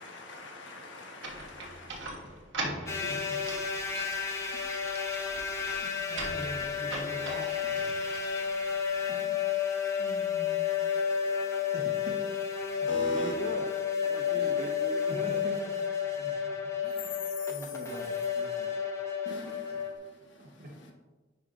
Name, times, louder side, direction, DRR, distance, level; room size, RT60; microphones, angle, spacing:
voice 1, 0.0-2.5 12.9-13.3 17.0-17.8 19.2-20.9, left 2 dB, 70° left, 1 dB, 1.1 m, -43 dB
sound 1, 1.2-9.0, right 2 dB, 75° right, 1.3 m, -42 dB
voice 2, 2.6-3.4 4.5-4.6 4.9-5.3 5.6-8.5 9.1-9.5 10.0-11.0 11.7-12.2 12.7-12.9 14.3-14.7 15.1-15.7 16.2-16.5 16.8-17.1 17.5-18.7 20.4-20.8, equal, 50° right, -1 dB, 1.0 m, -44 dB
sound 2, 2.9-19.9, left 7 dB, 15° left, 0.8 m, -31 dB
voice 3, 12.9-13.7 14.0-15.5, right 1 dB, 30° right, 2 dB, 0.5 m, -40 dB
9.7 x 5.3 x 2.5 m, 1.3 s
head